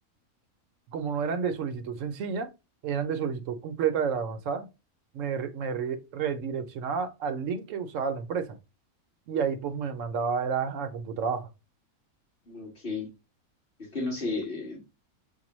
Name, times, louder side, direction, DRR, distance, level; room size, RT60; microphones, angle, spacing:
voice 1, 0.9-2.5 2.8-4.7 5.1-8.6 9.3-11.5, right 6 dB, 70° right, 0.9 m, -30 dB
voice 2, 12.5-13.1 13.9-14.8, left 3 dB, 40° left, 1.8 m, -33 dB
6.5 x 2.2 x 3.0 m
omnidirectional pair, 1.5 m